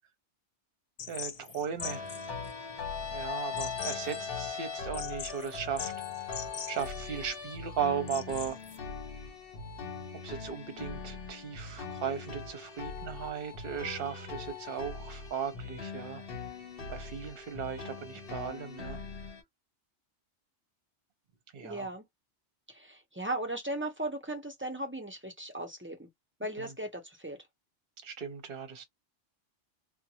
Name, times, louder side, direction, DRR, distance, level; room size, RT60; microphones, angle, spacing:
sound 1, 1.0-8.8, left 7 dB, 75° left, 0.3 m, -44 dB
voice 1, 1.1-2.1 3.1-5.9 6.2-6.4 6.7-8.6 10.2-16.3 16.9-19.0 21.5-21.9 26.6-26.7 28.0-28.8, right 7 dB, 55° right, 1.0 m, -37 dB
sound 2, 1.8-19.4, left 5 dB, 55° left, 1.0 m, -40 dB
voice 2, 21.6-22.0 22.7-26.1 26.4-27.4, right 1 dB, 15° right, 0.6 m, -37 dB
2.5 x 2.3 x 2.8 m
omnidirectional pair, 1.2 m